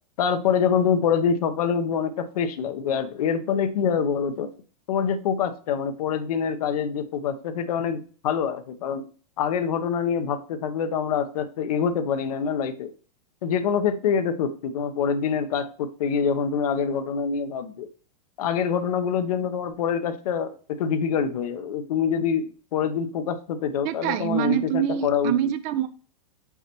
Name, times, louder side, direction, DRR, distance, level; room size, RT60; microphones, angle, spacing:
voice 1, 0.2-4.5 4.9-9.0 9.4-12.9 13.4-17.9 18.4-25.5, left 7 dB, 65° left, 9 dB, 0.9 m, -25 dB
voice 2, 23.8-25.9, right 10 dB, 40° right, 12 dB, 0.6 m, -25 dB
5.8 x 5.6 x 3.0 m, 0.39 s
hypercardioid pair, 125°, 20 cm